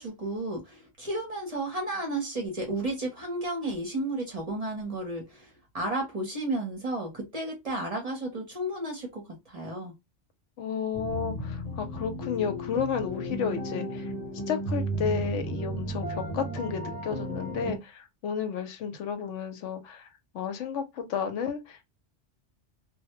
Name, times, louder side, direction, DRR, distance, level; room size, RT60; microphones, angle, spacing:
voice 1, 0.0-9.9, right 1 dB, 40° right, 0.7 m, -33 dB
voice 2, 10.6-14.1 14.5-20.1 20.3-21.9, left 7 dB, 85° left, 0.9 m, -32 dB
sound 1, 10.9-17.8, right 1 dB, 35° left, 0.9 m, -34 dB
2.2 x 2.1 x 2.8 m
omnidirectional pair, 1.2 m